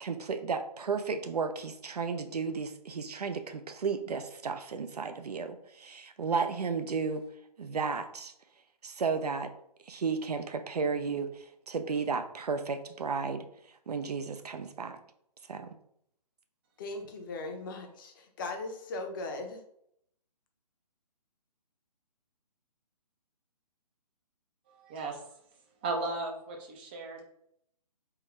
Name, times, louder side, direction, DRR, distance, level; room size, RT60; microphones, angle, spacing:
voice 1, 0.0-7.2 7.6-8.3 8.8-9.5 9.9-13.5 13.9-15.0 15.5-15.7, right 5 dB, 70° right, 8 dB, 0.5 m, -33 dB
voice 2, 16.8-19.6, left 2 dB, 30° left, 4 dB, 0.7 m, -38 dB
voice 3, 25.8-27.2, right 3 dB, 15° right, 1 dB, 0.4 m, -35 dB
3.7 x 2.6 x 3.1 m, 0.71 s
figure-of-eight pair, 135°, 21 cm